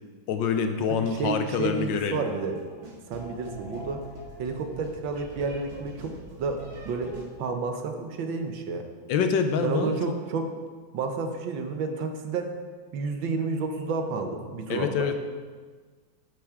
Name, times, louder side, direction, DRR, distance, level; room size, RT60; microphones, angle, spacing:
voice 1, 0.3-2.2 9.1-10.0 14.7-15.1, left 6 dB, 75° left, 7 dB, 1.4 m, -26 dB
voice 2, 0.9-2.7 3.1-4.1 4.4-8.9 9.6-10.5 10.9-12.6 12.9-15.1, right 4 dB, 75° right, 5 dB, 1.6 m, -31 dB
sound 1, 2.2-7.2, equal, 50° right, 2.5 m, -44 dB
9.5 x 8.6 x 3.6 m, 1.5 s
omnidirectional pair, 2.1 m